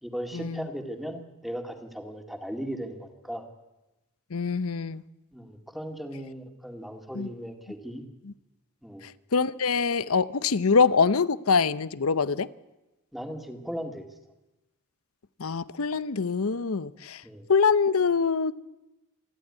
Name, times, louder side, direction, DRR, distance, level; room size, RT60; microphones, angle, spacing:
voice 1, 0.0-3.4 5.3-8.1 8.8-9.0 13.1-14.0 17.2-17.5, equal, ahead, 2.1 m, -37 dB
voice 2, 4.3-5.0 7.1-7.3 9.3-12.5 15.4-17.2 17.5-18.5, left 5 dB, 70° left, 0.7 m, -24 dB
27.0 x 12.0 x 9.7 m
head